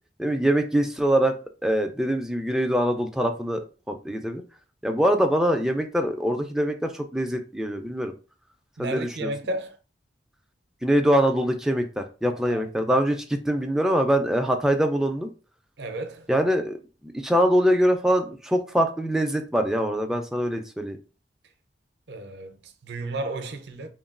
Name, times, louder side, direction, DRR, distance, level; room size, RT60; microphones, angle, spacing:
voice 1, 0.2-1.4 1.6-3.6 3.9-4.4 4.8-8.1 8.8-9.3 10.8-15.3 16.3-16.8 17.0-21.0, equal, 5° right, 0.3 m, -23 dB
voice 2, 8.8-9.8 12.5-12.7 15.8-16.3 22.1-23.9, right 2 dB, 70° right, 0.5 m, -33 dB
3.0 x 2.2 x 2.4 m
head